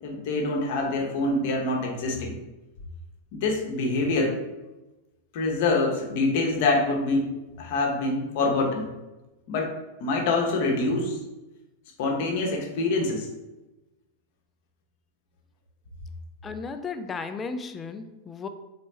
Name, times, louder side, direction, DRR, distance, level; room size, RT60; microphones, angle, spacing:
voice 1, 0.0-2.3 3.3-4.3 5.3-7.3 7.6-8.9 9.5-9.7 10.0-11.2 12.0-13.3, left 3 dB, 50° left, 1 dB, 0.8 m, -25 dB
voice 2, 16.4-18.5, left 4 dB, 20° left, 8 dB, 0.3 m, -34 dB
4.1 x 3.2 x 3.0 m, 1.1 s
figure-of-eight pair, 90°, 0 cm